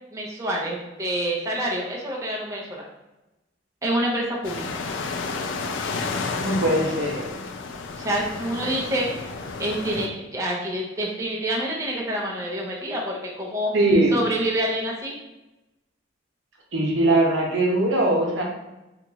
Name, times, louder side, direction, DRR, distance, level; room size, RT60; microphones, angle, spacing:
voice 1, 0.1-2.8 3.8-4.8 8.0-9.1 9.6-13.7 14.1-15.2, right 1 dB, 15° right, -3 dB, 0.5 m, -27 dB
sound 1, 4.4-10.1, left 4 dB, 75° left, 0.4 m, -31 dB
voice 2, 6.4-7.4 13.7-14.1 16.7-18.4, right 1 dB, 85° right, -1 dB, 0.8 m, -21 dB
2.9 x 2.4 x 3.8 m, 0.99 s
head